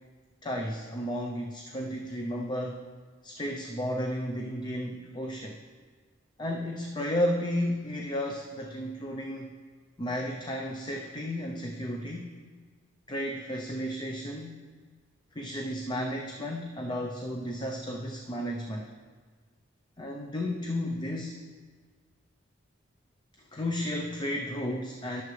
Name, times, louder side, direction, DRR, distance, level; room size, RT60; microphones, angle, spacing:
voice 1, 0.4-2.8 3.2-5.6 6.4-9.5 10.0-12.3 13.1-14.7 15.3-18.9 20.0-21.4 23.4-25.2, equal, 20° left, 1 dB, 0.6 m, -33 dB
20.0 x 7.1 x 3.2 m, 1.5 s
head